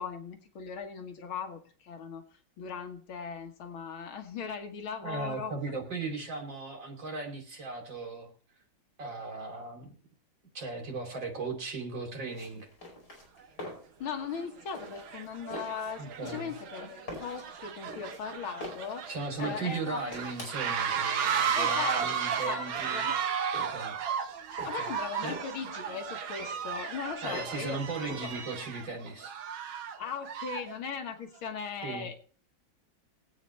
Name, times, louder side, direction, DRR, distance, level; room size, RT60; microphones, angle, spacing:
voice 1, 0.0-5.5 14.0-19.1 19.4-20.3 21.5-23.2 24.6-28.3 30.0-32.1, left 6 dB, 85° left, 5 dB, 2.2 m, -39 dB
voice 2, 5.0-8.3 9.0-9.9 10.5-12.7 16.0-16.5 19.1-23.9 24.7-24.9 25.2-25.4 27.2-29.3 31.8-32.1, right 3 dB, 65° right, 2 dB, 3.8 m, -37 dB
sound 1, 12.3-28.9, left 1 dB, 55° left, 6.0 m, -47 dB
sound 2, 13.4-13.5 14.2-14.4 14.8-30.8, right 7 dB, 80° right, 1.9 m, -34 dB
22.0 x 8.7 x 3.2 m, 0.44 s
omnidirectional pair, 2.2 m